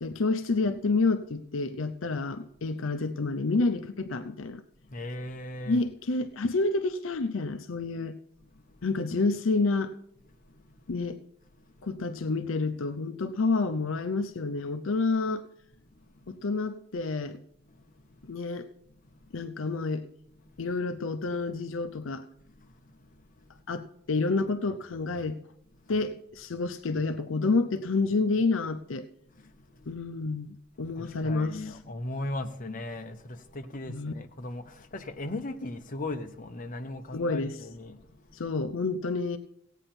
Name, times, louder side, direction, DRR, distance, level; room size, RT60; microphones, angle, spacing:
voice 1, 0.0-4.6 5.7-8.1 8.8-9.9 10.9-11.2 11.8-15.4 16.3-17.4 18.2-18.7 19.3-20.0 20.6-22.2 23.7-25.4 25.9-29.1 29.9-31.8 33.9-34.1 37.1-37.7 38.3-39.4, left 3 dB, 70° left, 0.6 m, -29 dB
voice 2, 4.8-5.8 8.5-8.8 10.2-11.0 11.6-11.9 15.9-16.4 17.6-18.4 18.9-19.5 20.3-20.7 22.5-23.6 25.7-26.0 29.3-30.0 30.8-38.5, left 2 dB, 40° left, 0.9 m, -40 dB
16.0 x 9.0 x 4.3 m
head